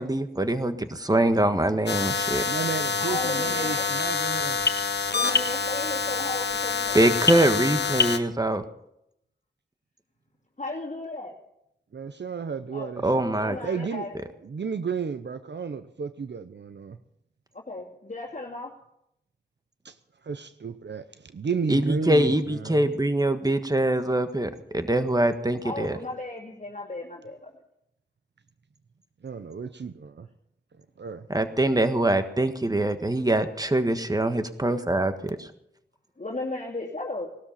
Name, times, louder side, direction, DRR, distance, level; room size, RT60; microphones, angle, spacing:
voice 1, 0.0-2.4 6.9-8.6 13.0-13.6 21.7-26.0 31.3-35.5, right 1 dB, 20° right, 8 dB, 1.5 m, -24 dB
sound 1, 1.9-8.2, left 5 dB, 70° left, 1.2 m, -26 dB
voice 2, 2.3-4.7 11.9-13.2 13.6-14.1 14.4-17.0 19.8-20.0 20.2-22.9 29.2-30.3 31.0-31.3, right 5 dB, 75° right, 11 dB, 0.8 m, -33 dB
voice 3, 2.9-3.8 5.1-7.0 10.6-11.3 12.7-12.9 13.4-14.1 17.5-18.7 25.6-27.5 36.2-37.3, left 2 dB, 45° left, -3 dB, 2.5 m, -35 dB
18.5 x 12.5 x 5.8 m, 0.80 s
wide cardioid pair, 55°, 18 cm